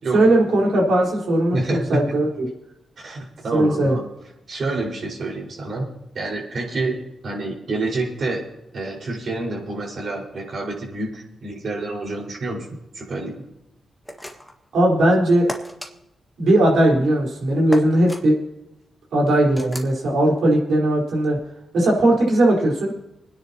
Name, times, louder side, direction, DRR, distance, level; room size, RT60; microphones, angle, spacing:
voice 1, 0.1-2.5 3.5-4.0 14.7-15.5 16.4-18.4 19.1-21.4 21.7-22.9, right 1 dB, 80° right, -2 dB, 4.7 m, -18 dB
voice 2, 1.5-2.1 3.0-4.1 4.5-5.9 6.1-7.0 7.2-8.4 8.7-12.7 12.9-13.4, right 2 dB, 60° right, -2 dB, 5.2 m, -28 dB
sound 1, 14.1-14.6 15.5-15.9 17.7-18.2 19.6-19.9, equal, ahead, 1.8 m, -34 dB
24.5 x 10.0 x 3.0 m, 0.87 s
cardioid pair, 65°, 0 cm